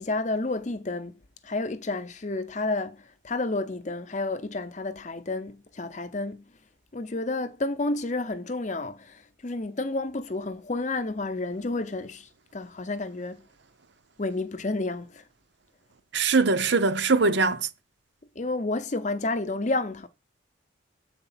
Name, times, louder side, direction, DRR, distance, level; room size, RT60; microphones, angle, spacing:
voice 1, 0.0-6.4 6.9-13.4 14.2-15.2 18.4-20.1, left 2 dB, 35° left, 0.7 m, -30 dB
voice 2, 16.1-17.7, right 4 dB, 65° right, 0.8 m, -22 dB
7.8 x 4.3 x 5.6 m
head